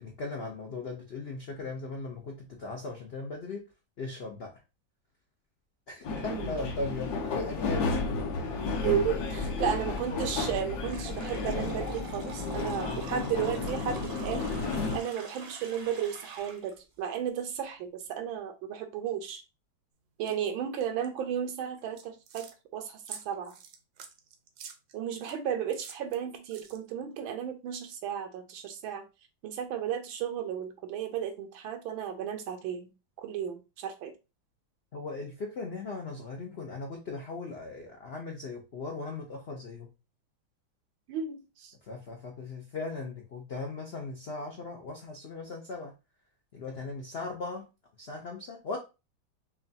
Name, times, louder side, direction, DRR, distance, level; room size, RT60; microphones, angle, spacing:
voice 1, 0.0-3.6 4.0-4.6 5.9-7.9 9.6-9.7 20.3-20.4 34.9-39.9 41.9-45.9 46.5-47.7 48.0-48.8, left 3 dB, 85° left, 1 dB, 0.5 m, -38 dB
sound 1, 6.0-15.0, left 3 dB, 65° left, 1.1 m, -32 dB
voice 2, 8.8-14.4 14.9-19.4 20.2-22.5 22.7-23.5 24.9-29.0 29.4-32.9 33.2-34.1 41.1-41.7, right 9 dB, 85° right, 7 dB, 1.5 m, -34 dB
sound 2, 10.8-16.7, right 3 dB, 50° right, 0.7 m, -46 dB
sound 3, 20.3-20.4 20.8-21.1 21.8-22.5 23.0-25.4 25.8-27.0, right 7 dB, 65° right, 1.0 m, -47 dB
6.0 x 2.3 x 2.7 m, 0.27 s
omnidirectional pair, 2.1 m